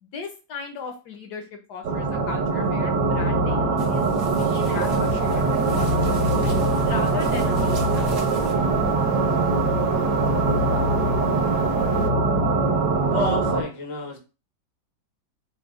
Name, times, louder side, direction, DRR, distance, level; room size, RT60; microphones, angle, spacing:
voice 1, 0.0-6.6 6.8-8.0, left 5 dB, 70° left, 5 dB, 1.1 m, -37 dB
sound 1, 1.8-13.6, right 3 dB, 70° right, 1.4 m, -22 dB
sound 2, 3.8-8.5, right 2 dB, 40° right, 1.0 m, -39 dB
sound 3, 5.1-12.1, right 4 dB, 85° right, 1.5 m, -37 dB
voice 2, 13.0-14.2, left 2 dB, 40° left, 2 dB, 0.4 m, -30 dB
5.1 x 2.1 x 3.6 m, 0.31 s
omnidirectional pair, 2.1 m